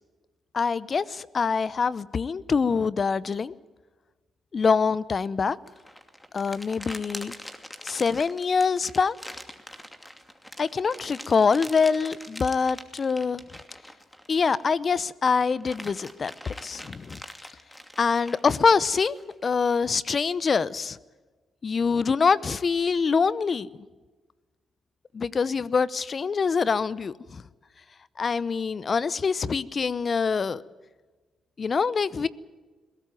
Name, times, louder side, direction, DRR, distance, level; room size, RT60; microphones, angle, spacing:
voice 1, 0.5-3.5 4.5-5.6 6.3-7.3 7.8-9.2 10.6-13.4 14.3-17.2 18.0-21.0 21.6-23.7 25.1-27.4 28.2-30.6 31.6-32.3, left 5 dB, 45° left, 0.8 m, -25 dB
sound 1, 5.7-14.9 15.3-19.5, equal, 10° left, 2.7 m, -43 dB
21.5 x 18.0 x 9.2 m
supercardioid pair, 55°, 0 cm